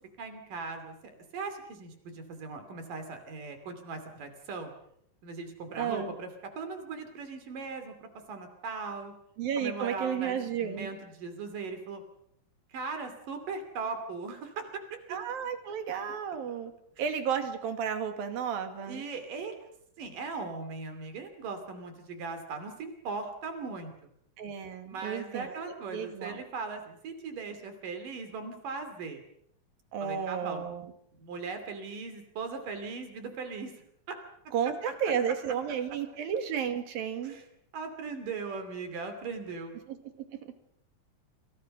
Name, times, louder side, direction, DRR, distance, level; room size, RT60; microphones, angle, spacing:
voice 1, 0.2-4.7 5.2-6.3 6.6-9.1 9.6-12.0 12.7-14.8 18.9-19.5 20.0-24.1 24.9-29.2 30.0-30.7 31.1-33.7 34.1-34.2 37.2-37.4 37.7-39.7, right 4 dB, 70° right, 7 dB, 4.4 m, -39 dB
voice 2, 5.8-6.1 9.4-10.9 15.1-16.7 17.0-19.0 24.4-25.6 25.9-26.4 29.9-30.9 34.5-37.4 39.9-40.0 40.3-40.5, right 7 dB, 85° right, 7 dB, 4.1 m, -32 dB
28.5 x 27.5 x 5.5 m, 0.72 s
omnidirectional pair, 4.1 m